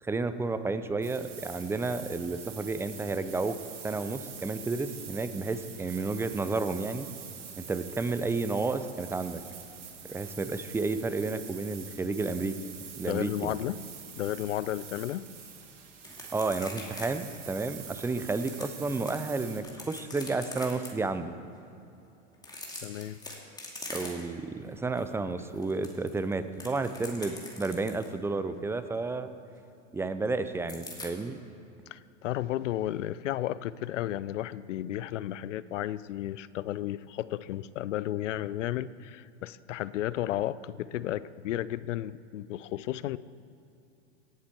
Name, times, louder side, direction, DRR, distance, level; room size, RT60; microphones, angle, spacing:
voice 1, 0.0-3.6 3.8-7.1 7.6-9.4 10.0-12.6 13.0-13.6 16.3-21.3 23.9-29.3 29.9-31.4, right 3 dB, 5° right, 11 dB, 0.4 m, -31 dB
sound 1, 1.0-19.6, right 7 dB, 85° right, 2.1 m, -45 dB
voice 2, 13.1-13.8 14.2-15.3 22.8-23.2 31.9-43.2, left 13 dB, 85° left, 18 dB, 0.5 m, -33 dB
sound 2, 16.0-17.1 17.3-17.4 18.0-19.2 19.6-20.9 22.3-24.4 24.8-25.0 25.4-28.1 30.7-31.1, left 2 dB, 10° left, 2.3 m, -43 dB
17.5 x 7.4 x 4.5 m, 2.7 s
hypercardioid pair, 105°, 36 cm